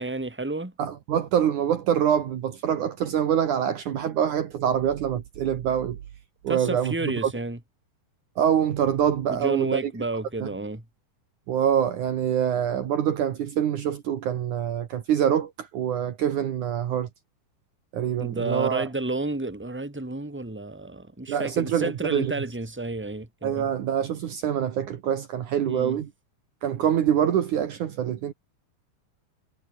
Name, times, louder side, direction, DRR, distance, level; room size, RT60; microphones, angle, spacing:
voice 1, 0.0-0.7 6.5-7.6 9.3-10.8 18.2-23.7 25.7-26.0, right 2 dB, 5° right, 3.2 m, -31 dB
voice 2, 0.8-6.0 6.4-7.3 8.4-9.9 10.4-10.5 11.5-17.1 17.9-18.8 21.3-22.3 23.4-26.1 26.6-28.3, right 9 dB, 60° right, 2.8 m, -25 dB
omnidirectional pair, 4.2 m